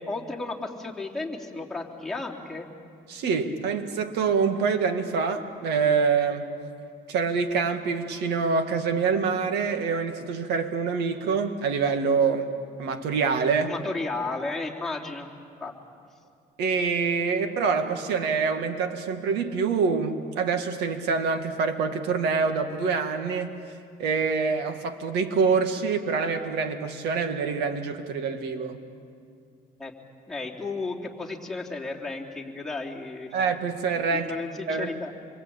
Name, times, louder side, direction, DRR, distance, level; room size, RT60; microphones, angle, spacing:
voice 1, 0.0-2.7 13.6-15.3 15.6-15.7 29.8-29.9 30.3-33.3 34.1-35.1, left 3 dB, ahead, -4 dB, 3.4 m, -33 dB
voice 2, 3.1-6.5 7.1-12.5 12.8-13.7 16.6-23.6 24.0-28.8 33.3-34.3 34.7-34.9, right 5 dB, 85° right, 7 dB, 2.1 m, -26 dB
27.5 x 23.0 x 8.8 m, 2.3 s
cardioid pair, 110°, 17 cm